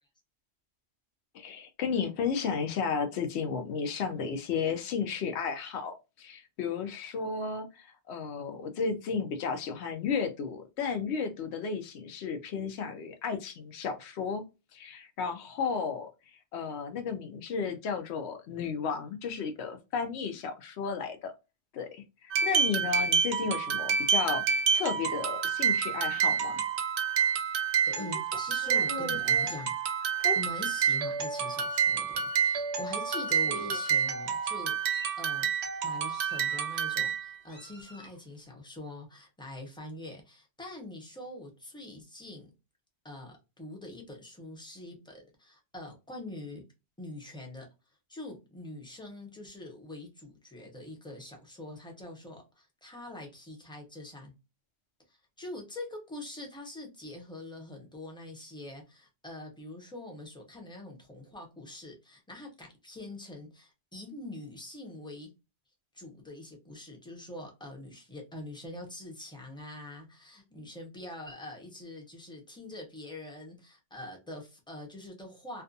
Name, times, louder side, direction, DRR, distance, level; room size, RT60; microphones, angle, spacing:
voice 1, 1.3-14.4 14.7-21.3 21.7-26.6, left 5 dB, 80° left, 0.9 m, -33 dB
sound 1, 22.3-37.4, right 7 dB, 80° right, 0.8 m, -28 dB
Meow, 27.9-29.5 30.2-30.4 31.2-31.4 31.7-31.9 33.0-33.1 33.4-34.0 34.6-35.3 36.1-36.9 37.5-38.2, left 1 dB, 25° left, 1.1 m, -41 dB
voice 2, 27.9-29.7 30.3-35.5 35.8-42.5 43.0-46.6 47.0-47.7 48.1-54.3 55.1-65.3 65.9-75.6, left 2 dB, 5° left, 0.6 m, -44 dB
2.5 x 2.3 x 2.5 m
omnidirectional pair, 1.1 m